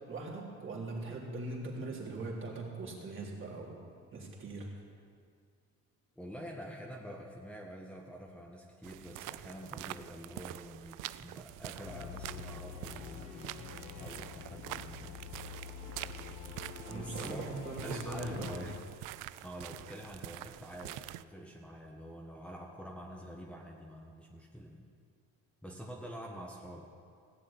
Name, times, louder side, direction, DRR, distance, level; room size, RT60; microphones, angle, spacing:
voice 1, 0.0-3.8 4.1-4.7 16.8-18.7, right 2 dB, 40° right, -2 dB, 3.5 m, -41 dB
voice 2, 6.1-15.2 16.9-17.5 17.8-18.7 19.4-24.8 25.6-26.9, equal, 5° left, -3 dB, 1.5 m, -47 dB
sound 1, 8.8-21.2, right 17 dB, 75° right, 0.5 m, -46 dB
sound 2, 11.8-18.8, left 8 dB, 70° left, 1.3 m, -47 dB
17.0 x 7.5 x 8.8 m, 2.2 s
cardioid pair, 100°, 31 cm